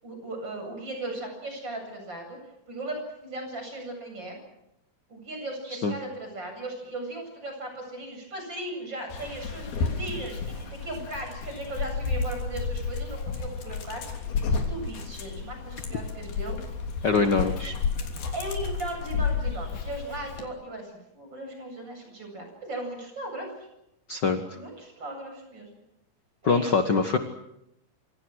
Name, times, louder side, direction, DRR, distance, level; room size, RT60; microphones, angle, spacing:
voice 1, 0.0-2.4 2.7-4.4 5.1-16.6 17.0-17.6 18.3-23.7 24.6-25.7 26.4-26.8, right 1 dB, 30° right, 4 dB, 8.7 m, -37 dB
Dog, 9.1-20.4, left 5 dB, 90° left, 5.2 m, -31 dB
voice 2, 17.0-17.7 24.1-24.4 26.5-27.2, left 4 dB, 55° left, 7 dB, 1.2 m, -23 dB
27.5 x 26.5 x 6.4 m, 0.83 s
omnidirectional pair, 4.2 m